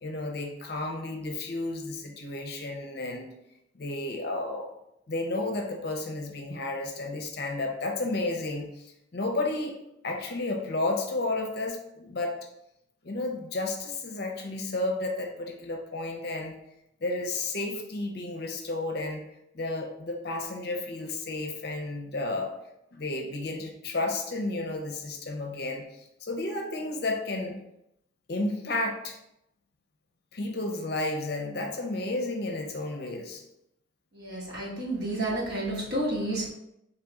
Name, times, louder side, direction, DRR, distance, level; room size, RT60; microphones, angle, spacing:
voice 1, 0.0-3.3 3.7-4.7 5.1-9.8 10.0-12.4 13.0-16.6 17.0-19.2 19.5-22.6 22.9-25.9 26.2-27.6 28.3-29.2 30.3-33.4, left 2 dB, 55° left, 3 dB, 0.6 m, -32 dB
voice 2, 34.1-36.5, right 1 dB, 55° right, -4 dB, 1.2 m, -30 dB
3.5 x 3.1 x 4.0 m, 0.82 s
head